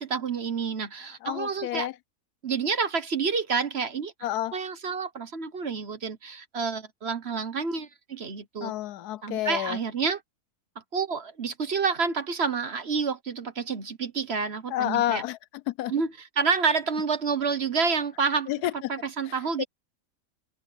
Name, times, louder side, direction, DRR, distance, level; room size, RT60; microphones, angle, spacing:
voice 1, 0.0-1.9 2.4-4.1 4.5-8.7 9.2-10.2 10.9-15.2 15.9-19.6, right 5 dB, 45° right, 1.3 m, -29 dB
voice 2, 1.2-1.9 4.2-4.6 8.6-9.8 14.7-15.4 15.7-15.9 18.5-18.7 19.6-19.7, left 13 dB, 80° left, 1.1 m, -29 dB
omnidirectional pair, 1.7 m